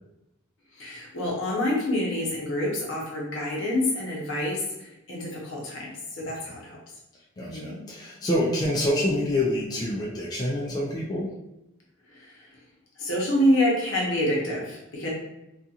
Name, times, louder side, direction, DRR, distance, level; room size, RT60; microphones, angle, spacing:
voice 1, 0.8-6.8 7.4-7.8 12.1-12.5 13.0-15.1, left 1 dB, 70° left, -3 dB, 0.8 m, -27 dB
voice 2, 7.4-11.3, left 1 dB, 20° left, -5 dB, 0.3 m, -26 dB
2.7 x 2.4 x 2.4 m, 0.89 s
head